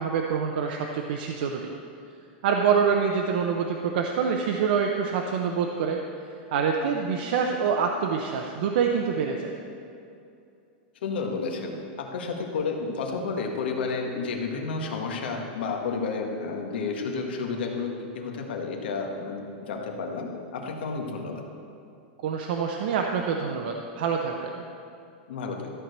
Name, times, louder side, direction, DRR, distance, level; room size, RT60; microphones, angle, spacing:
voice 1, 0.0-1.7 2.4-6.0 6.5-9.5 22.2-24.6, right 6 dB, 60° right, 2 dB, 0.7 m, -26 dB
voice 2, 11.0-21.4 25.3-25.7, left 4 dB, 85° left, 2 dB, 1.5 m, -31 dB
13.5 x 4.6 x 6.6 m, 2.6 s
supercardioid pair, 170°, 5 cm